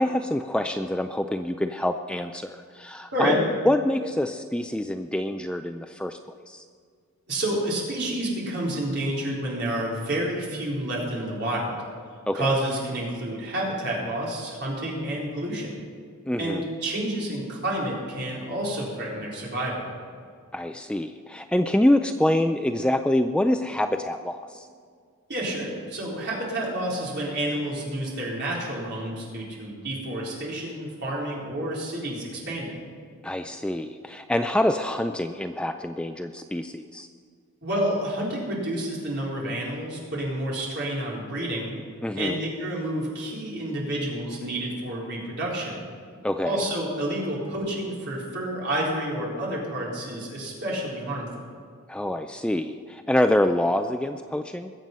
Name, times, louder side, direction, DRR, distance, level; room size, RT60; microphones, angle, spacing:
voice 1, 0.0-3.4 3.7-6.2 6.5-6.6 12.3-12.6 16.3-16.7 20.5-24.7 33.2-37.1 42.0-42.4 46.2-46.6 51.9-54.7, left 1 dB, 5° left, 7 dB, 0.3 m, -26 dB
voice 2, 3.1-3.5 7.3-11.8 12.3-15.8 16.4-19.9 25.3-32.8 37.6-41.8 42.2-45.8 46.4-51.3, right 1 dB, 50° right, -4 dB, 4.2 m, -29 dB
21.0 x 7.7 x 5.4 m, 2.1 s
head